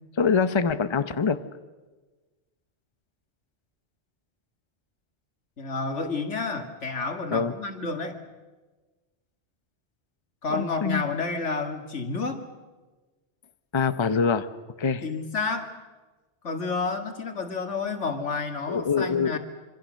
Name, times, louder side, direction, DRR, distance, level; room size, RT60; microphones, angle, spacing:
voice 1, 0.2-1.4 7.3-7.5 10.5-11.0 13.7-14.5 14.8-15.0 18.7-19.4, left 5 dB, 25° left, 11 dB, 0.9 m, -24 dB
voice 2, 5.6-8.2 10.4-12.4 15.0-15.7 16.4-19.4, left 4 dB, 90° left, 6 dB, 2.5 m, -30 dB
26.5 x 25.5 x 6.5 m, 1.3 s
omnidirectional pair, 1.2 m